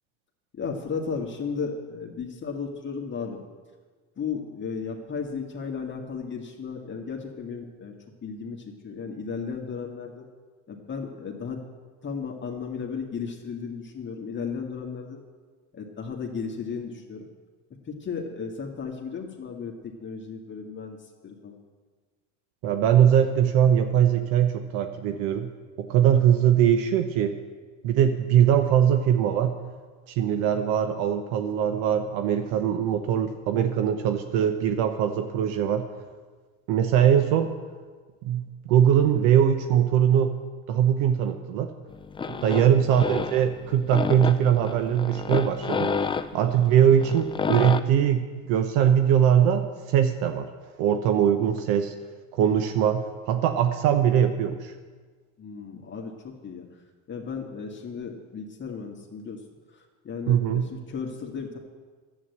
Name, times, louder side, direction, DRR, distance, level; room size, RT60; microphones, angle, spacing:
voice 1, 0.5-3.4 4.2-7.9 8.2-10.3 10.7-11.6 12.0-15.2 15.7-17.2 17.9-21.0 21.2-21.6 42.2-42.6 55.4-56.7 57.1-59.4 59.7-61.6, left 5 dB, 30° left, 1 dB, 1.8 m, -35 dB
voice 2, 22.6-25.5 25.8-27.3 27.8-29.6 30.1-35.9 36.7-37.5 38.2-40.4 40.7-41.7 42.4-45.9 46.3-50.5 50.8-51.9 52.3-54.7 60.3-60.7, right 9 dB, 75° right, 7 dB, 0.9 m, -21 dB
sound 1, 41.9-47.8, left 5 dB, 15° left, 0.5 m, -30 dB
11.0 x 8.4 x 8.0 m, 1.5 s
supercardioid pair, 95°, 36 cm